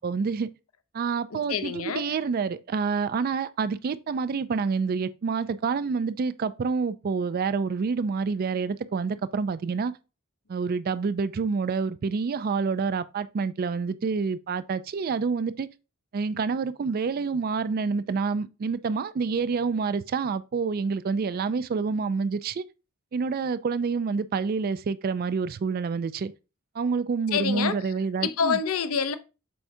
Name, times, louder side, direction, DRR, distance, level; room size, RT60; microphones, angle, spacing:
voice 1, 0.0-0.5 0.9-9.9 10.5-15.7 16.1-22.6 23.1-26.3 26.8-28.6, right 5 dB, 40° right, 0.3 m, -28 dB
voice 2, 1.3-2.1 27.3-29.1, left 6 dB, 70° left, 0.6 m, -28 dB
7.7 x 4.7 x 2.7 m
head